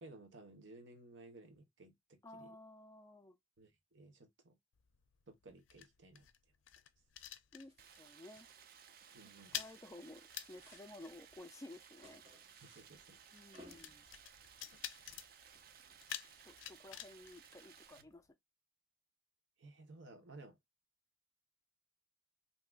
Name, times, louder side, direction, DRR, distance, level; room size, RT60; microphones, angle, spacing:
voice 1, 0.0-2.6 3.6-4.6 5.3-6.3 9.1-9.5 12.6-13.2 19.6-20.6, right 2 dB, 70° right, 1.0 m, -57 dB
voice 2, 2.2-3.4 7.5-8.5 9.5-12.2 13.3-14.0 16.4-18.3, left 1 dB, 15° left, 0.4 m, -54 dB
sound 1, 4.7-8.1 8.3-8.6 8.9-18.3, left 11 dB, 80° left, 0.4 m, -50 dB
sound 2, 7.6-7.9 8.2-8.6 9.0-10.1 10.3-17.3, equal, 30° right, 1.0 m, -65 dB
Stream, 7.8-18.0, right 8 dB, 50° right, 0.4 m, -60 dB
3.6 x 2.8 x 2.3 m
head